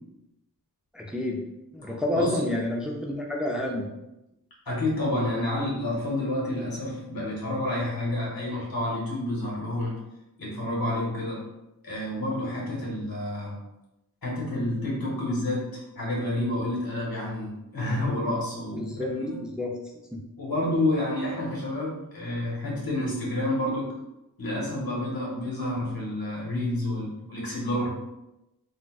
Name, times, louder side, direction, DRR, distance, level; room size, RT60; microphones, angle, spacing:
voice 1, 0.9-1.4 1.7-3.9 18.8-19.1 19.6-19.7 20.1-20.2, left 1 dB, ahead, -1 dB, 0.5 m, -29 dB
voice 2, 1.8-2.5 4.7-9.9 10.4-11.4 11.8-13.6 14.2-19.4 20.4-23.9 24.4-27.9, left 1 dB, 75° left, -5 dB, 1.3 m, -29 dB
3.8 x 2.2 x 2.3 m, 0.92 s
cardioid pair, 45°, 36 cm